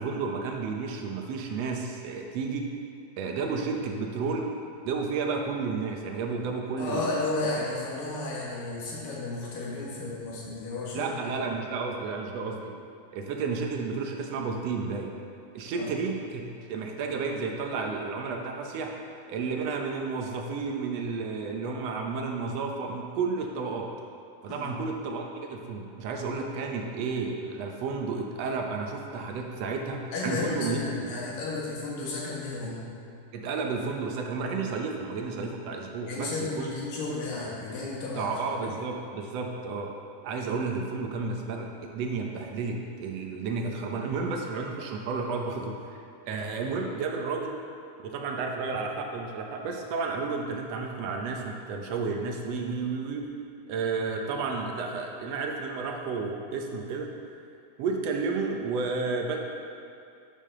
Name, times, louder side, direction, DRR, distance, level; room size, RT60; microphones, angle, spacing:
voice 1, 0.0-2.7 3.2-4.5 4.8-7.1 10.9-12.7 13.1-15.1 15.5-16.4 16.7-18.9 19.3-23.9 24.4-30.8 33.3-36.7 38.1-39.9 40.2-47.6 48.0-53.3 53.7-57.1 57.8-59.4, right 4 dB, 75° right, 2 dB, 1.5 m, -32 dB
voice 2, 6.8-11.3 15.7-15.9 24.5-24.8 30.1-32.8 36.1-38.6 48.7-48.8, left 2 dB, 85° left, -5 dB, 3.5 m, -33 dB
12.5 x 8.4 x 3.7 m, 2.4 s
omnidirectional pair, 3.9 m